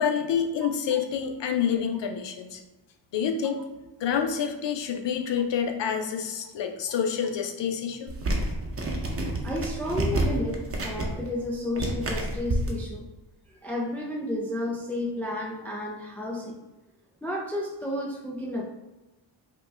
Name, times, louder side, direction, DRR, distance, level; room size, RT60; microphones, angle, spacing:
voice 1, 0.0-2.6 3.1-3.6 4.0-8.1, left 7 dB, 75° left, 4 dB, 0.7 m, -28 dB
sound 1, 8.1-12.7, right 1 dB, 30° right, 0.7 m, -29 dB
voice 2, 9.4-13.1 13.6-16.6 17.2-18.6, left 1 dB, 5° left, -2 dB, 0.4 m, -32 dB
5.1 x 2.2 x 3.3 m, 1.1 s
wide cardioid pair, 115°, 43 cm